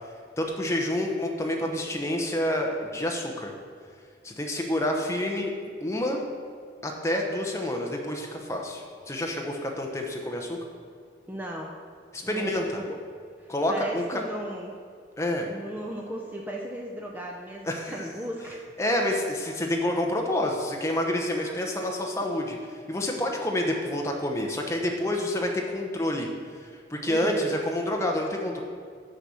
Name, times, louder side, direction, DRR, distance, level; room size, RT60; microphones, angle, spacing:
voice 1, 0.4-3.5 4.2-6.2 6.8-10.6 12.1-12.8 13.5-14.2 15.2-15.5 17.6-18.1 18.8-26.3 26.6-28.6, left 1 dB, 15° left, 1 dB, 0.8 m, -28 dB
voice 2, 11.3-11.8 12.2-13.0 13.4-14.8 15.4-18.6 21.4-21.5 27.1-27.5, right 1 dB, 10° right, -1 dB, 0.5 m, -37 dB
6.6 x 5.8 x 6.3 m, 2.1 s
head